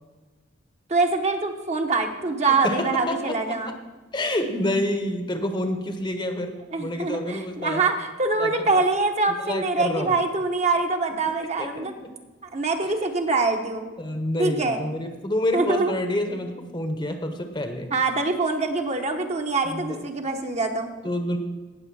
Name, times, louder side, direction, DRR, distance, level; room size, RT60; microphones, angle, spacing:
voice 1, 0.9-3.7 6.7-11.9 12.4-13.9 14.4-14.8 15.5-15.9 17.9-20.9, right 3 dB, 35° right, 4 dB, 1.0 m, -24 dB
voice 2, 2.5-3.6 4.1-7.8 8.4-8.8 9.4-10.1 11.6-11.9 13.0-13.1 14.0-17.9 19.6-20.0 21.0-21.4, left 1 dB, 25° left, 7 dB, 1.0 m, -28 dB
18.0 x 6.8 x 4.7 m, 1.3 s
head